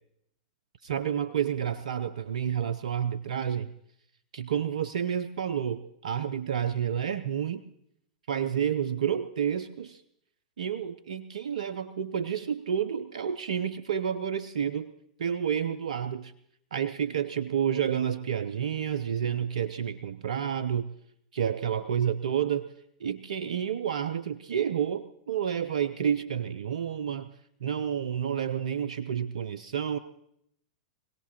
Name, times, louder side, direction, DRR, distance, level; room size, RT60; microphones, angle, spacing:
voice 1, 0.8-3.7 4.3-7.6 8.3-10.0 10.6-14.9 15.2-16.3 16.7-20.9 21.3-22.7 23.0-27.3 27.6-30.0, right 8 dB, 75° right, 12 dB, 0.5 m, -30 dB
23.5 x 17.5 x 2.9 m, 0.75 s
hypercardioid pair, 105°, 4 cm